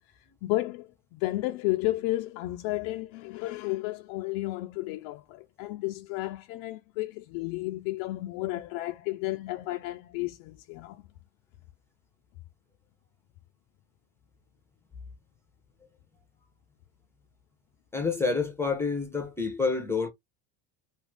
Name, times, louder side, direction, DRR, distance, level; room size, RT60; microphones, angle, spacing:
voice 1, 0.4-11.0, left 18 dB, 75° left, 0.5 m, -32 dB
voice 2, 17.9-20.1, left 4 dB, 5° left, 0.7 m, -28 dB
2.6 x 2.5 x 3.3 m
cardioid pair, 140°, 39 cm